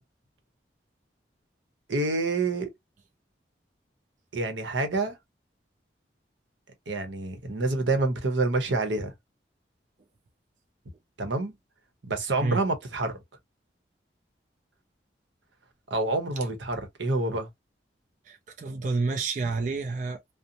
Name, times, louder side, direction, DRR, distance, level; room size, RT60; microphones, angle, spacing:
voice 1, 1.9-2.7 4.3-5.2 6.9-9.1 11.2-11.5 12.0-13.2 15.9-17.5, right 2 dB, 90° right, 0.8 m, -27 dB
voice 2, 18.3-20.3, right 3 dB, 45° right, 0.3 m, -29 dB
2.6 x 2.0 x 2.8 m
head